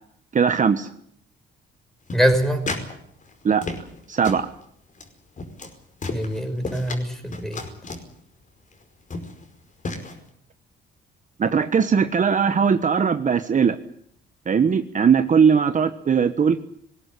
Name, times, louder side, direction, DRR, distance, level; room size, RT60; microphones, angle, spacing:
voice 1, 0.3-0.9 3.4-3.6 4.1-4.5 11.4-13.8 14.5-16.6, right 6 dB, 40° right, 9 dB, 1.2 m, -19 dB
sound 1, 2.1-2.9 3.2-4.0 4.2-4.5 4.9-5.1 5.4-5.7 6.0-7.0 7.3-8.1 8.7-8.8 9.1-9.4 9.8-10.1, left 3 dB, 40° left, 5.1 m, -32 dB
voice 2, 2.1-2.6 6.1-7.6, equal, ahead, 6 dB, 5.9 m, -23 dB
19.5 x 17.0 x 10.0 m, 0.67 s
cardioid pair, 90°, 20 cm